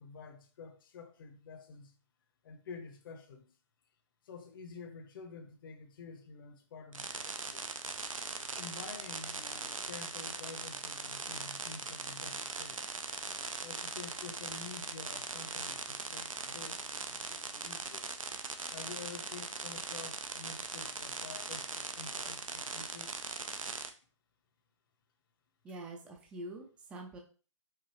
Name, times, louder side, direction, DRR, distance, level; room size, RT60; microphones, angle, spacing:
voice 1, 0.0-2.0 2.4-3.5 4.2-7.6 8.6-12.8 13.6-18.2 18.7-23.2, left 5 dB, 45° left, 0.8 m, -49 dB
sound 1, 6.9-23.9, right 4 dB, 85° right, 0.6 m, -40 dB
voice 2, 25.6-27.2, right 1 dB, 5° right, 0.4 m, -45 dB
4.8 x 2.6 x 3.0 m
figure-of-eight pair, 135°, 17 cm